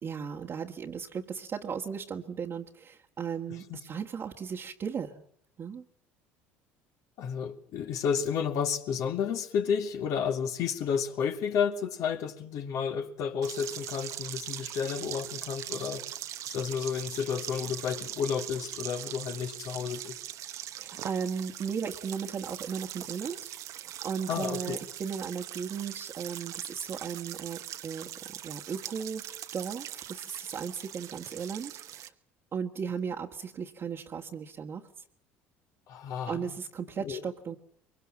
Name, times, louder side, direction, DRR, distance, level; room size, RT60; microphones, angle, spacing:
voice 1, 0.0-5.2 5.6-5.8 20.8-32.1 32.5-34.9 36.3-37.6, right 6 dB, 40° right, 1.6 m, -36 dB
voice 2, 3.5-3.8 7.2-16.1 16.5-20.2 24.3-24.8 35.9-36.6 37.0-37.2, left 7 dB, 60° left, 2.3 m, -31 dB
sound 1, 13.4-32.1, right 12 dB, 60° right, 1.2 m, -41 dB
23.0 x 23.0 x 7.5 m
hypercardioid pair, 75°, 6 cm